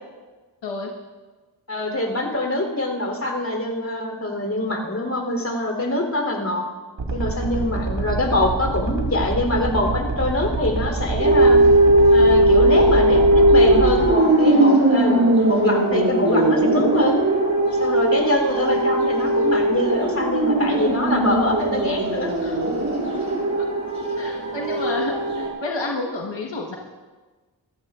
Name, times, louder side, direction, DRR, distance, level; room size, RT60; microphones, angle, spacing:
voice 1, 1.7-6.6 7.1-11.6 12.1-15.2 15.5-17.2 17.8-22.3 23.3-23.4, left 1 dB, 40° left, 2 dB, 3.6 m, -24 dB
sound 1, 7.0-14.1, right 3 dB, 80° right, 2.1 m, -26 dB
sound 2, 11.2-25.5, right 1 dB, 40° right, 5.0 m, -18 dB
voice 2, 15.0-15.3 22.4-22.6 23.5-23.7 24.2-26.8, left 2 dB, 85° left, -1 dB, 1.4 m, -30 dB
25.0 x 15.0 x 2.5 m, 1.3 s
cardioid pair, 55°, 43 cm